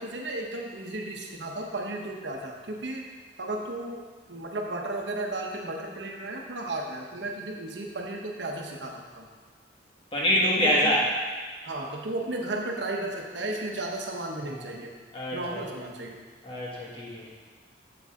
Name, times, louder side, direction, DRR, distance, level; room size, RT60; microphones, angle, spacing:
voice 1, 0.0-3.1 3.4-4.0 4.3-9.3 10.4-10.9 11.6-14.9 15.3-16.2, right 2 dB, 75° right, 1 dB, 1.0 m, -34 dB
voice 2, 10.1-11.0 14.5-14.7 15.1-15.9 16.4-17.3, equal, 30° left, -4 dB, 1.5 m, -26 dB
7.9 x 6.9 x 3.7 m, 1.5 s
head